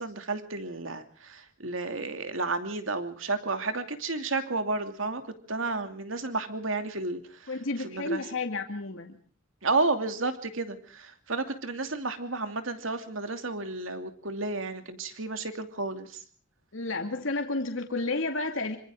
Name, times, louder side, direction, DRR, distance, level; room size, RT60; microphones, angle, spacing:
voice 1, 0.0-5.2 5.5-7.2 7.8-8.2 9.6-16.1, right 3 dB, 80° right, 7 dB, 2.7 m, -32 dB
voice 2, 7.5-9.2 16.7-18.8, left 2 dB, 75° left, 4 dB, 2.3 m, -31 dB
26.5 x 25.5 x 3.8 m, 0.44 s
head